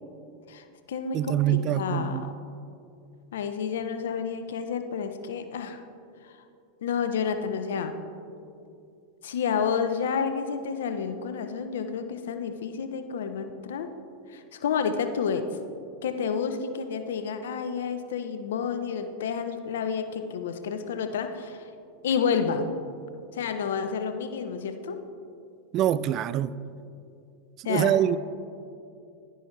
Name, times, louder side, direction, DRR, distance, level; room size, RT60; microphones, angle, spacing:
voice 1, 0.5-2.3 3.3-5.8 6.8-8.0 9.2-13.9 14.3-15.5 16.0-21.6 22.0-22.7 23.3-25.0 27.6-28.2, left 6 dB, 75° left, 0.7 m, -30 dB
voice 2, 1.1-2.3 25.7-26.5 27.7-28.2, right 11 dB, 45° right, 0.3 m, -24 dB
11.0 x 10.0 x 3.3 m
hypercardioid pair, 100°, 0 cm